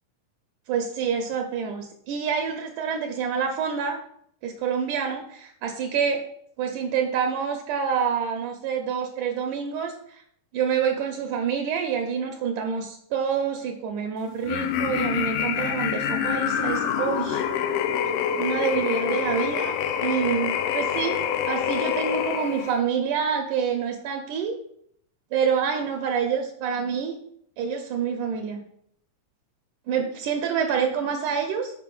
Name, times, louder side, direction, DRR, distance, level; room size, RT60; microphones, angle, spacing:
voice 1, 0.7-4.0 4.4-6.2 6.6-10.2 10.5-17.4 18.4-19.8 20.0-21.2 21.5-24.6 25.3-27.2 27.6-28.6 29.9-31.7, right 7 dB, 75° right, 3 dB, 2.1 m, -27 dB
sound 1, 14.4-22.8, left 9 dB, 80° left, 2.1 m, -26 dB
6.7 x 5.2 x 5.4 m, 0.69 s
omnidirectional pair, 4.0 m